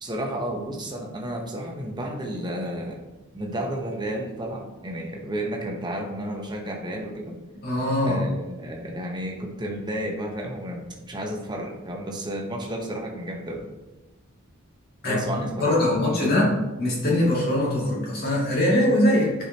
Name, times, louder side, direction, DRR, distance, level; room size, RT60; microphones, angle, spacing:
voice 1, 0.0-3.0 3.3-7.4 8.0-13.7 15.0-16.5, right 1 dB, 20° right, 0 dB, 1.0 m, -32 dB
voice 2, 7.6-8.2 15.0-15.2 15.6-16.5 16.8-19.3, left 1 dB, 45° left, -5 dB, 2.4 m, -22 dB
9.8 x 4.9 x 2.9 m, 1.1 s
head